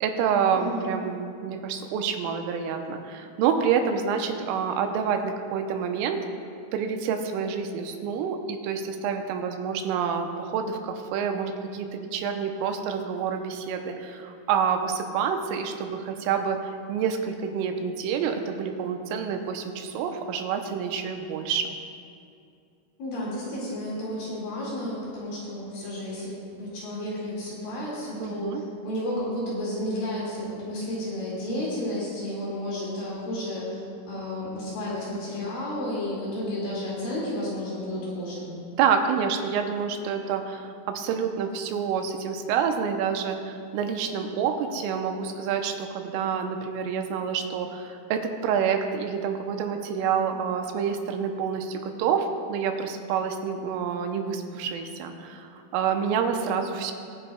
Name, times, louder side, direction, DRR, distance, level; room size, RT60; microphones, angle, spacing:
voice 1, 0.0-6.2 6.7-21.7 28.2-28.6 38.7-56.9, right 7 dB, 90° right, 5 dB, 3.2 m, -28 dB
voice 2, 0.5-1.0 23.0-26.3 26.6-33.8 34.1-38.5, left 1 dB, 55° left, -6 dB, 3.3 m, -32 dB
22.5 x 9.2 x 2.3 m, 2.5 s
omnidirectional pair, 5.7 m